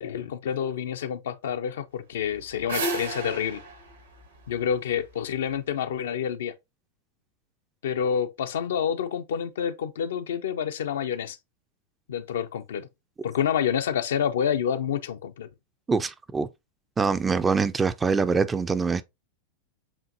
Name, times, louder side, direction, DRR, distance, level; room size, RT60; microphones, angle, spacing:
voice 1, 0.0-3.6 4.5-6.5 7.8-11.4 12.1-12.9 13.2-15.5, left 8 dB, 60° left, 0.5 m, -28 dB
sound 1, 2.2-5.3, right 2 dB, 70° right, 1.2 m, -33 dB
voice 2, 15.9-16.5 17.0-19.0, right 4 dB, 15° right, 0.4 m, -24 dB
7.3 x 2.6 x 2.6 m
figure-of-eight pair, 90°, 0 cm